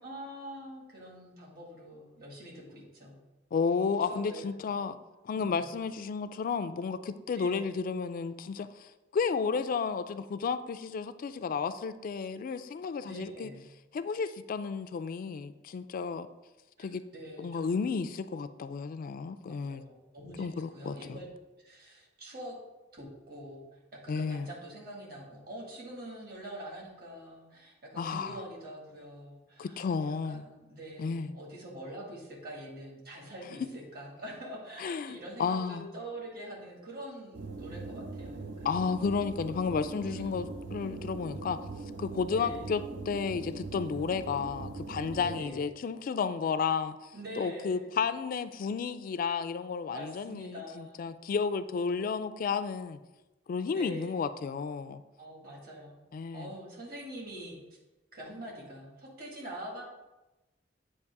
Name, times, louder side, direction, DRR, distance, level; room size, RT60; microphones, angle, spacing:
voice 1, 0.0-3.2 4.0-4.6 5.3-5.6 7.3-7.7 13.1-13.6 16.8-16.9 17.1-17.7 19.7-21.3 21.6-22.6 22.9-38.8 40.0-40.5 42.3-42.7 45.1-45.7 47.1-47.9 49.9-51.1 53.7-54.3 55.2-56.0 56.3-57.6 58.1-59.8, right 1 dB, 55° right, -2 dB, 1.8 m, -45 dB
voice 2, 3.5-5.0 5.2-13.5 13.9-16.3 16.8-17.0 17.4-19.8 20.4-21.2 24.1-24.5 28.0-28.4 29.6-30.5 31.0-31.3 34.8-35.9 38.6-41.6 42.0-47.0 47.4-53.0 53.5-55.0 56.1-56.5, left 5 dB, 50° left, 11 dB, 0.3 m, -32 dB
sound 1, 37.3-45.4, right 3 dB, 85° right, 0.7 m, -41 dB
8.3 x 2.9 x 4.6 m, 1.0 s
head